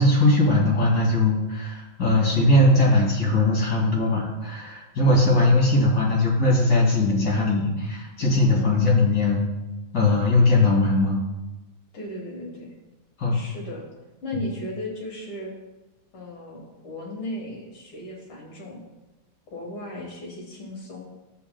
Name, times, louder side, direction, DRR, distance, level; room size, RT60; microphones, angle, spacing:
voice 1, 0.0-9.5 9.9-11.2 13.2-13.4 14.3-14.4, left 2 dB, 50° left, -4 dB, 3.0 m, -20 dB
voice 2, 8.2-8.7 11.9-12.7 13.3-13.9 14.2-15.5 16.1-18.8 19.5-21.0, left 1 dB, 80° left, -1 dB, 2.5 m, -36 dB
11.5 x 7.3 x 2.3 m, 1.0 s
omnidirectional pair, 2.3 m